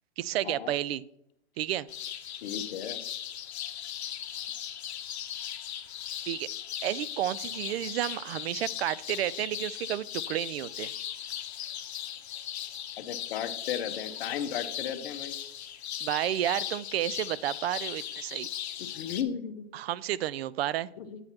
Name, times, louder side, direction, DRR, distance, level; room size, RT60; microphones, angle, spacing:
voice 1, 0.2-1.0 1.6-1.9 6.2-6.5 6.8-10.9 16.0-18.5 19.7-20.9, right 13 dB, 70° right, 19 dB, 0.5 m, -31 dB
sound 1, 1.9-19.2, left 10 dB, 85° left, 0.9 m, -38 dB
voice 2, 2.4-3.0 13.0-15.4 18.8-19.7 21.0-21.2, left 8 dB, 60° left, 10 dB, 0.9 m, -35 dB
9.0 x 7.8 x 2.9 m, 0.76 s
hypercardioid pair, 145°, 32 cm